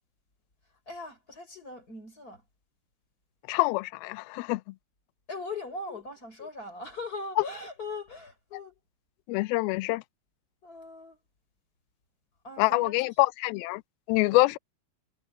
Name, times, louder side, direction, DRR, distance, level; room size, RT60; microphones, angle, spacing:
voice 1, 0.9-2.4 5.3-8.7 10.6-11.2 12.4-13.1 14.2-14.4, left 2 dB, 20° left, 5.3 m, -40 dB
voice 2, 3.5-4.6 9.3-10.0 12.6-13.8 14.1-14.6, left 22 dB, 80° left, 2.3 m, -25 dB
omnidirectional pair, 4.7 m